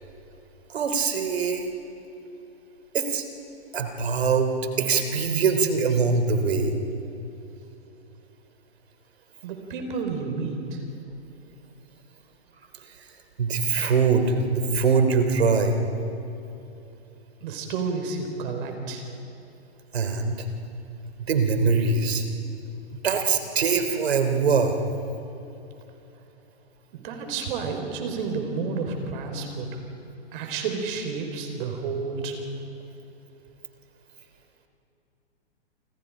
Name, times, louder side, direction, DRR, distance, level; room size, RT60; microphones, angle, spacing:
voice 1, 0.7-1.7 2.9-3.2 3.7-6.7 12.8-12.9 13.4-15.8 19.9-20.5 21.2-22.2 23.0-24.8, right 5 dB, 75° right, 7 dB, 3.3 m, -23 dB
voice 2, 9.4-10.8 17.4-19.1 26.9-29.8 30.3-32.4, right 4 dB, 50° right, 4 dB, 4.7 m, -31 dB
28.5 x 26.0 x 5.1 m, 2.9 s
hypercardioid pair, 125°, 32 cm